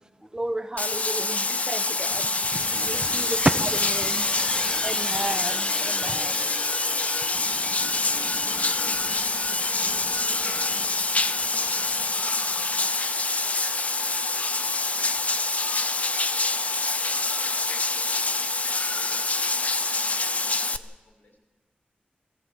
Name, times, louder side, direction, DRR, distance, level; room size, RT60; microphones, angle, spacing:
voice 1, 0.3-4.3 4.8-6.4 7.1-7.2, right 2 dB, 25° right, 8 dB, 1.1 m, -31 dB
Bathtub (filling or washing), 0.8-20.8, left 3 dB, 45° left, 0.8 m, -26 dB
voice 2, 1.1-1.9 2.7-3.3 3.7-4.9 5.5-6.5 8.0-8.4, equal, ahead, 0 dB, 3.4 m, -49 dB
sound 1, 2.0-13.4, left 2 dB, 25° left, 1.1 m, -34 dB
sound 2, 2.0-13.8, right 2 dB, 50° right, 2.1 m, -47 dB
voice 3, 17.0-18.2 18.5-19.3 19.8-21.4, left 1 dB, 80° left, 0 dB, 6.8 m, -55 dB
21.0 x 16.0 x 8.0 m, 1.2 s
wide cardioid pair, 100°, 3 cm